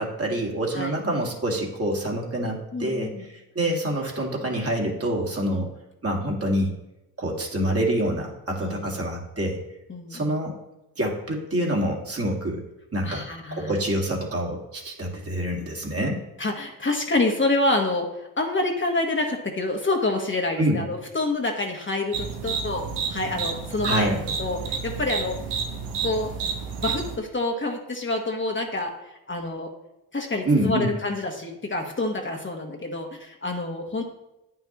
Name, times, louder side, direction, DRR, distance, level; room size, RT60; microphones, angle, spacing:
voice 1, 0.0-5.7 6.0-6.7 7.2-9.6 10.1-10.6 11.0-12.6 12.9-16.2 20.6-20.9 23.8-24.3 30.5-30.9, right 1 dB, 35° right, -1 dB, 1.9 m, -26 dB
voice 2, 2.7-3.2 5.5-5.6 8.6-8.9 9.9-10.4 13.0-13.8 16.4-18.1 18.4-24.1 24.4-25.4 26.0-26.3 26.8-28.9 29.3-29.7 30.1-34.0, left 2 dB, 30° left, 2 dB, 1.2 m, -27 dB
sound 1, 22.1-27.2, right 5 dB, 85° right, 0.8 m, -30 dB
8.9 x 5.7 x 3.0 m, 0.94 s
supercardioid pair, 50°, 39 cm